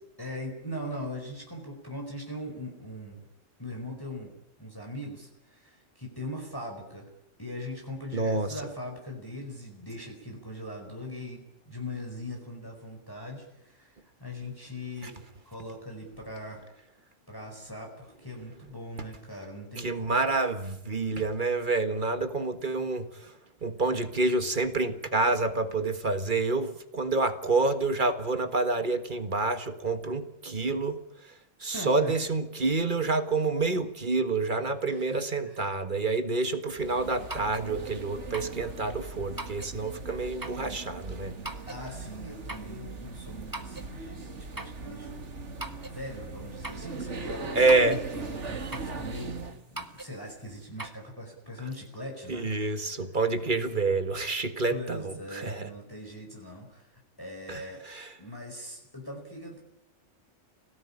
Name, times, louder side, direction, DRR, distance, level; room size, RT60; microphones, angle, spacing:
voice 1, 0.2-3.2 3.6-7.1 7.4-15.2 15.4-16.6 17.3-20.2 31.6-32.1 34.8-35.8 41.7-45.3 45.7-49.4 49.7-53.2 54.7-57.8 58.2-59.6, left 1 dB, 15° left, 0 dB, 4.8 m, -41 dB
voice 2, 8.1-8.5 19.8-23.3 23.6-31.0 31.6-41.3 47.5-48.0 52.3-55.7 57.5-57.6 57.9-58.0, right 3 dB, 40° right, 9 dB, 1.8 m, -28 dB
sound 1, 36.7-49.6, right 3 dB, 65° right, 2.3 m, -40 dB
sound 2, 37.3-37.7 38.3-38.6 39.4-39.8 40.4-40.7 41.4-41.8 42.5-42.7 43.5-43.9 44.6-44.8 45.6-46.0 46.6-46.9 47.7-48.1 48.7-49.0 49.8-50.1 50.8-50.9, right 2 dB, 15° right, 1.7 m, -39 dB
25.5 x 18.0 x 10.0 m, 0.82 s
omnidirectional pair, 1.3 m